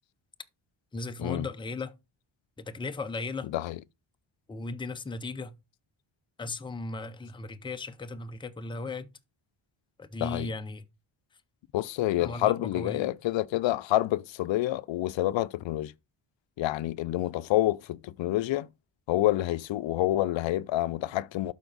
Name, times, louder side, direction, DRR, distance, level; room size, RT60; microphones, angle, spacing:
voice 1, 0.9-1.9 2.6-3.5 4.5-5.5 6.4-9.1 10.0-10.8 12.2-13.1, left 3 dB, 10° left, 0.5 m, -36 dB
voice 2, 11.7-15.9 16.6-18.7 19.1-21.5, left 15 dB, 75° left, 0.5 m, -28 dB
12.0 x 4.4 x 3.9 m
wide cardioid pair, 160°, 45 cm